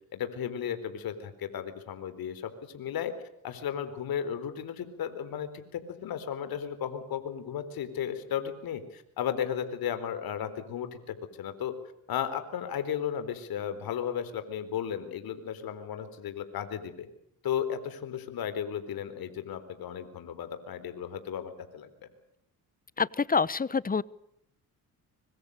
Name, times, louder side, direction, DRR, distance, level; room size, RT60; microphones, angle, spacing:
voice 1, 0.1-3.1 3.4-11.7 12.1-17.1 17.4-21.9, left 9 dB, 70° left, 11 dB, 4.2 m, -34 dB
voice 2, 23.0-24.0, left 5 dB, 25° left, 21 dB, 1.0 m, -26 dB
24.5 x 23.5 x 6.7 m, 0.76 s
cardioid pair, 85°, 37 cm